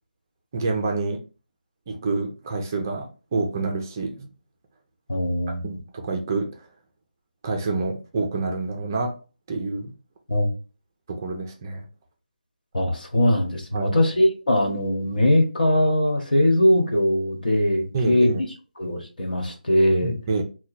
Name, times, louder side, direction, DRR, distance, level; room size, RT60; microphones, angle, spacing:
voice 1, 0.5-1.2 1.9-4.3 5.5-6.5 7.4-9.2 9.5-9.9 11.1-11.9 13.7-13.9 17.9-18.4 20.0-20.4, right 3 dB, 20° right, 2 dB, 0.4 m, -27 dB
voice 2, 5.1-5.6 10.3-10.5 12.7-18.3 18.8-20.1, left 1 dB, 70° left, 2 dB, 1.3 m, -21 dB
2.9 x 2.2 x 4.1 m, 0.34 s
figure-of-eight pair, 170°, 5 cm